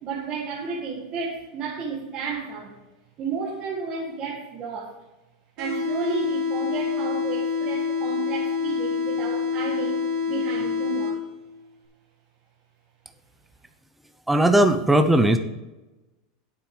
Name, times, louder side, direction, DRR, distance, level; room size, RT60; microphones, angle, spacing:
voice 1, 0.0-2.8 3.2-5.0 5.6-11.2, right 5 dB, 30° right, -4 dB, 1.9 m, -32 dB
sound 1, 5.6-11.6, left 5 dB, 70° right, 3.4 m, -27 dB
voice 2, 14.3-15.4, right 1 dB, 5° right, 7 dB, 0.6 m, -18 dB
9.0 x 7.4 x 4.9 m, 1.1 s
supercardioid pair, 160°, 3 cm